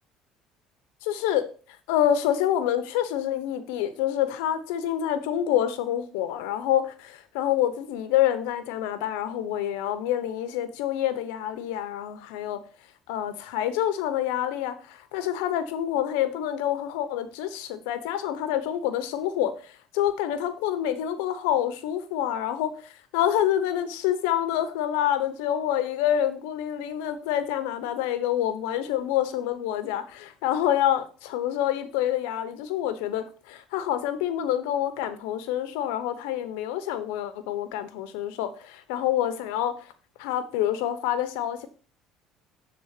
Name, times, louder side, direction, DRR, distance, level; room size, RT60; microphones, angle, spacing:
voice 1, 1.0-1.4 1.9-12.6 13.1-39.8 40.2-41.7, left 11 dB, 90° left, 1.0 m, -27 dB
7.2 x 3.8 x 6.6 m
cardioid pair, 110°, 0 cm